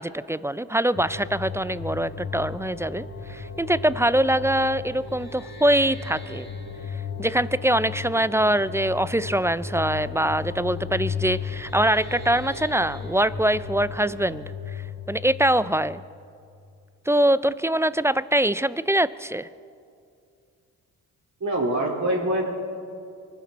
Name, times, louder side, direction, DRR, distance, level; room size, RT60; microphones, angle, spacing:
voice 1, 0.0-6.5 7.2-16.0 17.1-19.5, right 1 dB, 5° right, 17 dB, 0.4 m, -23 dB
sound 1, 1.0-16.4, left 5 dB, 30° left, 4.2 m, -35 dB
voice 2, 21.4-22.5, right 1 dB, 45° right, -1 dB, 4.4 m, -24 dB
24.0 x 11.5 x 4.1 m, 2.4 s
hypercardioid pair, 45°, 40 cm